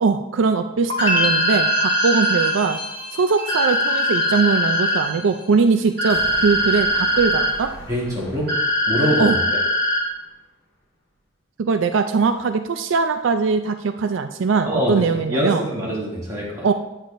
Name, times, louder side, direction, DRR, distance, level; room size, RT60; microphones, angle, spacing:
voice 1, 0.0-2.8 3.1-7.7 9.2-9.4 11.6-15.7 16.6-16.7, right 4 dB, 75° right, 8 dB, 0.4 m, -21 dB
sound 1, 0.9-5.9 6.2-6.9, left 1 dB, 25° left, 0.9 m, -29 dB
sound 2, 1.0-2.5 3.5-5.0 6.0-7.5 8.5-10.0, left 1 dB, 50° right, 2.4 m, -21 dB
sound 3, 6.1-10.4, equal, 70° left, 2.0 m, -42 dB
voice 2, 7.9-8.5 8.9-9.4 14.6-16.7, equal, 20° right, -6 dB, 2.4 m, -24 dB
8.9 x 8.5 x 2.6 m, 0.94 s
head